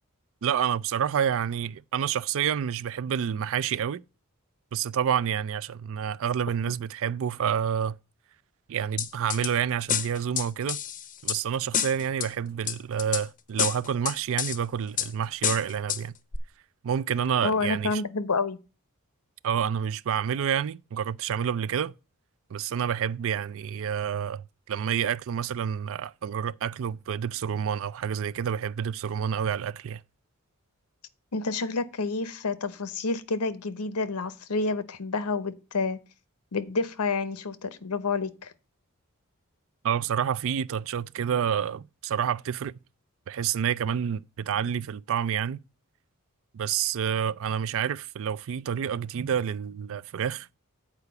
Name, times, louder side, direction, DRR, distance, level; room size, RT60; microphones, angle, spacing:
voice 1, 0.4-4.0 4.7-8.0 8.7-10.8 11.2-16.2 16.8-18.0 19.4-21.9 22.5-30.0 39.8-42.7 43.3-45.6 46.5-50.5, right 8 dB, 65° right, 0.4 m, -28 dB
sound 1, 9.0-9.5 9.9-11.4 11.7-12.3 12.7-13.2 13.6-14.6 15.0-15.1 15.4-16.0 16.3-16.4, left 9 dB, 35° left, 0.6 m, -28 dB
voice 2, 17.4-18.6 31.3-36.0 36.5-38.5, left 3 dB, 85° left, 0.9 m, -29 dB
8.2 x 4.8 x 6.9 m
head